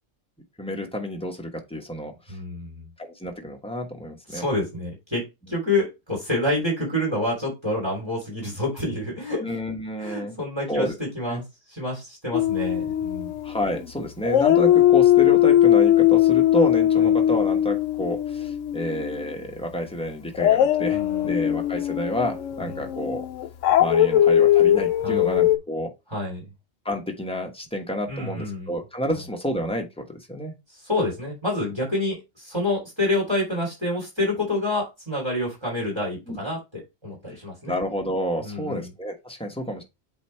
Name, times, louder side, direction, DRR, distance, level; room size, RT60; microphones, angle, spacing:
voice 1, 0.6-2.4 3.0-4.4 9.4-10.4 10.7-11.0 11.3-11.4 13.4-23.2 23.8-25.9 26.8-30.5 36.3-36.4 37.7-39.8, equal, 5° left, 1.1 m, -29 dB
voice 2, 2.3-2.9 4.3-9.4 10.0-13.3 17.0-17.1 20.9-21.4 22.8-22.9 25.0-25.5 26.1-26.5 28.1-28.7 30.7-37.8 38.4-38.9, left 1 dB, 20° right, 3.0 m, -28 dB
Dog, 12.3-13.9 14.2-19.3 20.3-25.6, left 12 dB, 85° left, 1.0 m, -20 dB
8.0 x 2.9 x 4.4 m
omnidirectional pair, 1.3 m